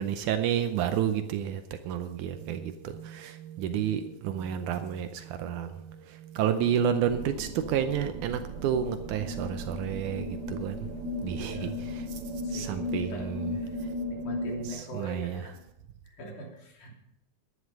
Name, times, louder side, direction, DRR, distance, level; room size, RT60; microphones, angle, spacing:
voice 1, 0.0-10.9 11.2-12.2 12.5-13.9 14.5-15.5, right 9 dB, 80° right, 2.1 m, -31 dB
sound 1, 2.1-14.9, right 10 dB, 25° right, 4.1 m, -50 dB
sound 2, 7.0-14.7, left 1 dB, 60° right, 3.5 m, -36 dB
voice 2, 11.3-11.9 12.4-13.8 14.1-15.6 16.0-16.9, right 2 dB, 75° left, 4.5 m, -43 dB
12.5 x 11.0 x 5.3 m
omnidirectional pair, 3.6 m